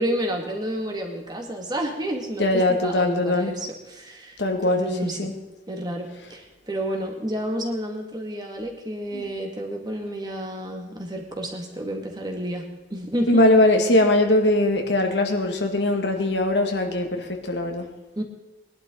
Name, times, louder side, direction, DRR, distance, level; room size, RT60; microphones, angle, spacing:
voice 1, 0.0-5.3 5.7-12.6 12.9-13.4 18.2-18.3, equal, 25° right, 2 dB, 2.1 m, -30 dB
voice 2, 2.4-3.5 4.4-5.3 9.1-9.2 13.3-17.9, left 1 dB, 75° left, 3 dB, 2.0 m, -21 dB
21.0 x 11.5 x 3.9 m, 1.0 s
head